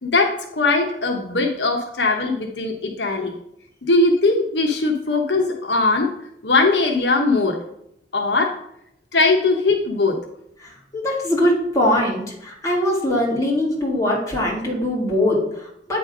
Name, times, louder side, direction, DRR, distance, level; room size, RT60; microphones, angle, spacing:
voice 1, 0.0-3.3 3.9-6.1 6.4-7.6 8.1-8.6 9.1-10.2, left 3 dB, 75° left, 2 dB, 1.0 m, -20 dB
voice 2, 10.6-16.0, left 1 dB, 20° left, -4 dB, 2.1 m, -22 dB
8.5 x 3.5 x 5.2 m, 0.75 s
head